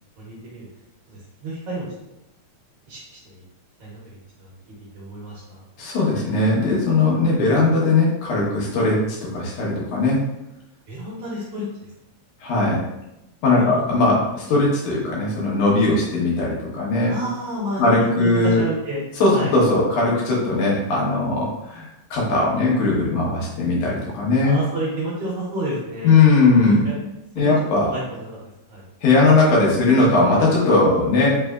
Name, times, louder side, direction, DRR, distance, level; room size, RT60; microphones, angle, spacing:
voice 1, 0.2-0.7 1.1-1.9 2.9-3.4 3.8-4.5 4.8-5.7 10.9-11.9 13.5-13.8 14.5-14.6 17.1-19.0 19.3-19.5 24.4-26.2 26.6-27.0 27.4-27.5 27.8-28.4 28.7-28.9, right 1 dB, 60° right, -6 dB, 2.0 m, -30 dB
voice 2, 5.8-10.2 12.4-12.8 13.4-17.1 17.8-18.6 19.2-24.6 26.0-26.8 27.4-27.9 29.0-31.4, left 3 dB, 85° left, -5 dB, 2.5 m, -19 dB
5.3 x 3.3 x 2.3 m, 0.89 s
omnidirectional pair, 3.4 m